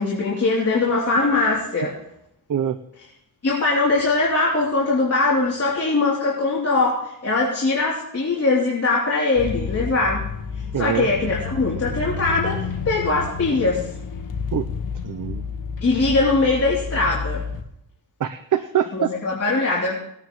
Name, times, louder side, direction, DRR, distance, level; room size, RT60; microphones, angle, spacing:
voice 1, 0.0-2.0 3.4-10.2 10.8-13.8 15.8-17.4 18.9-19.9, left 3 dB, 40° left, -5 dB, 3.3 m, -21 dB
sound 1, 9.4-17.6, left 5 dB, 60° left, 1.5 m, -30 dB
voice 2, 10.7-11.1 14.5-14.7 15.0-15.4 18.2-19.1, right 9 dB, 55° right, 9 dB, 0.8 m, -24 dB
20.5 x 9.4 x 3.2 m, 0.79 s
cardioid pair, 85°, 37 cm